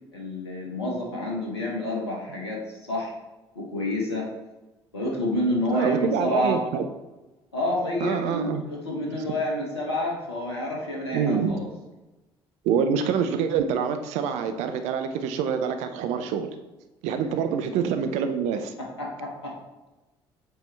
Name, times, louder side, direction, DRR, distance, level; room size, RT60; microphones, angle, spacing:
voice 1, 0.1-3.1 3.5-4.3 4.9-6.6 7.5-11.7 17.2-17.3 19.0-19.5, left 1 dB, 80° left, -1 dB, 0.9 m, -29 dB
voice 2, 5.7-6.8 8.0-8.6 9.1-9.2 11.1-11.6 12.6-16.5 17.0-18.7, right 7 dB, 60° right, 7 dB, 0.5 m, -26 dB
7.6 x 4.4 x 3.3 m, 1.1 s
figure-of-eight pair, 50°, 13 cm